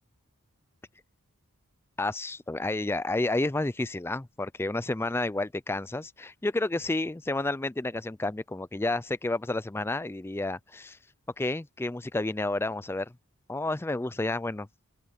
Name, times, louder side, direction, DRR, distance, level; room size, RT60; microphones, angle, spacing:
voice 1, 2.0-11.0 11.4-13.1 13.5-14.7, left 2 dB, 10° left, 0.4 m, -30 dB
open air
head